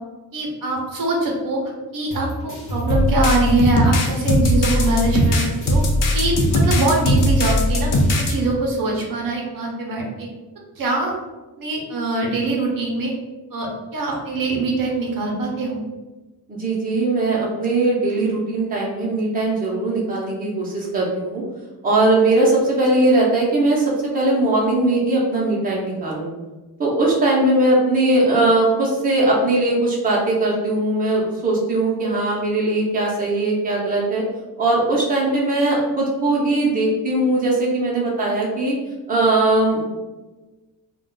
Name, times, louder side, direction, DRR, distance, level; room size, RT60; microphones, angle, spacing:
voice 1, 0.3-1.6 1.9-5.8 6.1-7.9 8.2-10.3 10.8-11.1 11.6-13.1 13.5-15.8, right 2 dB, 55° right, -1 dB, 0.7 m, -23 dB
sound 1, 2.1-8.3, right 1 dB, 30° left, 1.1 m, -29 dB
sound 2, 2.9-8.3, left 1 dB, 55° left, 0.5 m, -19 dB
voice 2, 16.5-21.4 21.8-26.3 26.8-34.2 34.6-38.8 39.1-39.8, right 2 dB, 20° right, -4 dB, 0.7 m, -19 dB
2.3 x 2.2 x 3.7 m, 1.2 s
wide cardioid pair, 155°, 39 cm